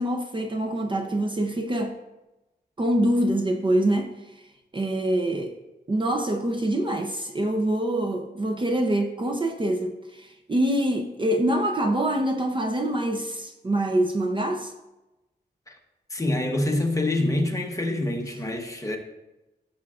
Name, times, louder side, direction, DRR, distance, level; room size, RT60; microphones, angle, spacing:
voice 1, 0.0-1.9 2.8-4.1 4.7-5.5 5.9-14.7, right 1 dB, 25° right, 0.6 m, -25 dB
voice 2, 16.1-19.0, left 1 dB, 15° left, 1.0 m, -26 dB
15.0 x 7.1 x 2.4 m
wide cardioid pair, 165°, 18 cm